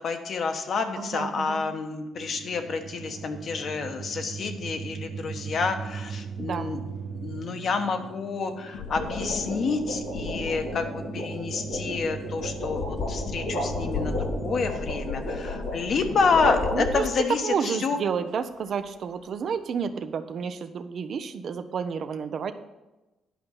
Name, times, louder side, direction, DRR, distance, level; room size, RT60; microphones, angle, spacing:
voice 1, 0.0-6.8 7.1-18.0, left 4 dB, 55° left, 6 dB, 1.2 m, -29 dB
voice 2, 1.0-1.6 6.4-6.7 16.7-17.0 17.4-22.5, right 6 dB, 60° right, 9 dB, 0.7 m, -30 dB
sound 1, 2.1-14.7, right 6 dB, 80° right, 1.0 m, -39 dB
sound 2, 3.0-3.4 8.5-17.4, left 2 dB, 75° left, 3.8 m, -32 dB
10.0 x 5.3 x 7.0 m, 1.0 s
cardioid pair, 90°, 0 cm